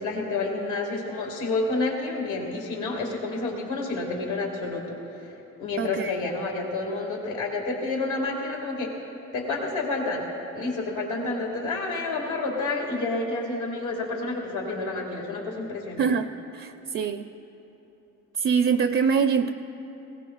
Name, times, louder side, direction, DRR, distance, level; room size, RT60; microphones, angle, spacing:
voice 1, 0.0-5.3 5.6-8.9 9.3-10.3 10.5-16.1, left 3 dB, 85° left, -1 dB, 1.9 m, -29 dB
voice 2, 5.8-6.1 16.0-17.3 18.3-19.5, right 6 dB, 45° right, 8 dB, 0.4 m, -24 dB
20.0 x 17.5 x 2.3 m, 3.0 s
cardioid pair, 90°, 30 cm